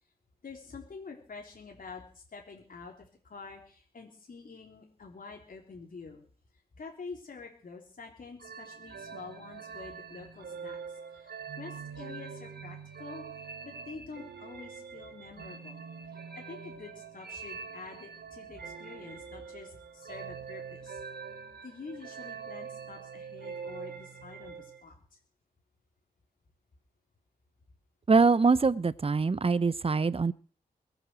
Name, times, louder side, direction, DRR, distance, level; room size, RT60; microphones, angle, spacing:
voice 1, 0.4-6.2 6.7-13.3 13.6-15.8 16.1-21.0 21.6-25.0, left 4 dB, 60° left, 0 dB, 3.7 m, -47 dB
sound 1, 8.4-24.8, right 6 dB, 80° right, 1.9 m, -44 dB
voice 2, 28.1-30.3, right 4 dB, 35° right, 19 dB, 0.7 m, -24 dB
22.0 x 7.9 x 6.2 m, 0.43 s
cardioid pair, 65°, 16 cm